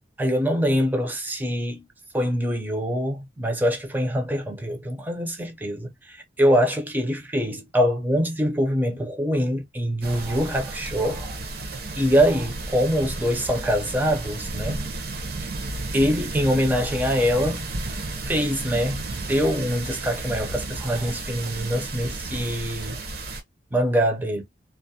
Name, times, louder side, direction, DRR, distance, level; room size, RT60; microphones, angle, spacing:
voice 1, 0.2-1.9 2.1-11.4 12.0-14.8 15.9-17.9 18.3-23.0 23.7-24.4, equal, 10° right, 0.5 m, -24 dB
sound 1, 10.0-23.4, right 2 dB, 55° right, 0.6 m, -33 dB
2.3 x 2.0 x 2.6 m
head